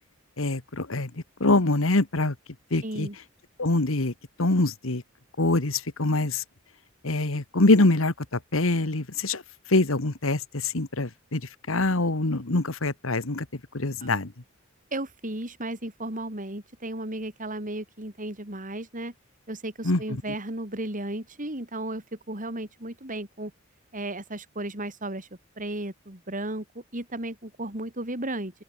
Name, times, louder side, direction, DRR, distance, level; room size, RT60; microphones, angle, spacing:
voice 1, 0.4-1.1 1.4-2.4 2.7-3.1 3.6-4.1 4.4-5.0 5.4-6.4 7.0-9.4 9.7-11.4 11.7-13.5 13.7-14.3 19.8-20.0, left 2 dB, 75° left, 1.7 m, -24 dB
voice 2, 2.8-3.2 14.0-14.1 14.9-19.1 19.5-23.5 23.9-25.3 25.6-28.5, right 1 dB, 40° right, 5.3 m, -34 dB
open air
head